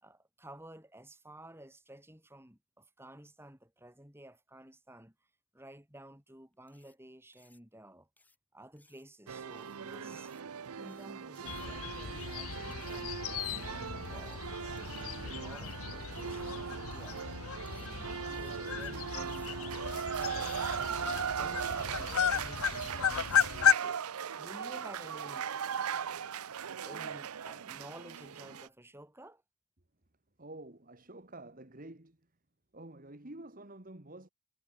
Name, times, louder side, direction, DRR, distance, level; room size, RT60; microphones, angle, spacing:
voice 1, 0.0-5.1 5.5-8.1 8.5-10.3 10.7-13.2 13.5-17.2 17.7-19.9 21.2-24.0 24.4-25.5 26.8-29.4, right 1 dB, 10° right, 4.7 m, -53 dB
sound 1, 6.7-6.9 7.3-7.6 8.2-8.4 8.8-9.0 9.5-9.8 10.1-10.4 10.8-11.1 11.3-11.7 12.0-12.4 12.7-13.0 13.4-13.7 14.0-14.4 14.8-15.0 15.5-15.8 16.2-16.5 16.9-17.3 17.7-17.9 18.3-18.9 19.2-19.5 19.8-20.6 20.9-21.2 21.5-21.8 22.0-22.3 22.6-22.9 23.2-23.5, left 3 dB, 10° left, 4.4 m, -63 dB
sound 2, 9.3-28.7, right 7 dB, 85° right, 0.6 m, -39 dB
sound 3, 11.5-23.7, left 8 dB, 75° left, 0.7 m, -34 dB
voice 2, 30.4-32.3 32.7-34.3, right 2 dB, 40° right, 1.9 m, -49 dB
head